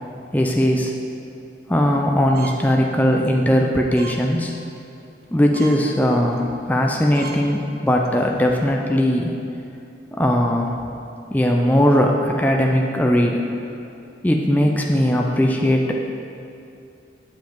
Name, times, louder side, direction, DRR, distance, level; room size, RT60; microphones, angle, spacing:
voice 1, 0.3-0.9 1.7-4.5 5.3-9.3 10.1-10.8 11.3-13.4 14.2-16.0, equal, 10° left, 0 dB, 0.4 m, -19 dB
sound 1, 2.3-2.7 3.1-3.3 3.9-4.2 4.6-4.9 5.2-5.3 5.5-5.8 6.3-6.5 6.8-6.9 7.1-7.4 7.9-8.1, right 6 dB, 55° right, 0.7 m, -37 dB
7.3 x 7.2 x 4.6 m, 2.6 s
head